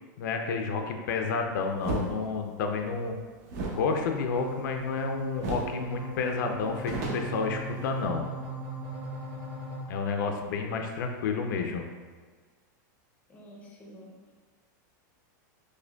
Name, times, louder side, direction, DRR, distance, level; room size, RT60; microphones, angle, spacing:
voice 1, 0.2-3.2 3.7-8.2 9.9-11.9, left 4 dB, 75° left, 4 dB, 0.4 m, -30 dB
sound 1, 1.8-2.1 3.5-5.0 5.4-5.8 6.1-6.2 6.5-8.1, right 3 dB, 55° right, 0.7 m, -35 dB
sound 2, 4.3-9.8, right 1 dB, 20° right, 0.8 m, -38 dB
voice 2, 13.3-14.3, equal, 15° left, -1 dB, 0.5 m, -49 dB
4.9 x 2.1 x 2.2 m, 1.5 s
supercardioid pair, 150°, 10 cm